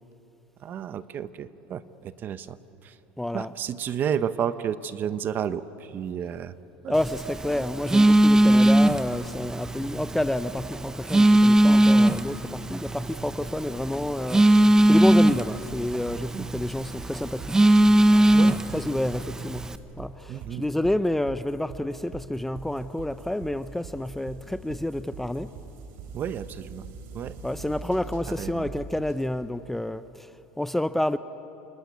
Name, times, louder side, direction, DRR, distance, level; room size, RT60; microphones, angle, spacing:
voice 1, 0.6-2.6 2.8-2.9 3.3-6.5 6.8-6.9 16.3-16.5 18.3-18.6 20.3-20.6 26.1-26.8 27.1-27.4 28.4-28.7, right 8 dB, 40° right, 13 dB, 1.0 m, -31 dB
voice 2, 3.2-3.6 6.9-17.7 18.5-19.7 20.0-25.6 27.4-30.3 30.6-31.2, left 1 dB, 5° left, 12 dB, 0.6 m, -29 dB
Telephone, 6.9-19.8, right 1 dB, 10° right, 0.9 m, -21 dB
sound 1, 15.7-29.3, right 5 dB, 60° right, 4.4 m, -43 dB
28.0 x 19.5 x 9.5 m, 3.0 s
supercardioid pair, 115°, 5 cm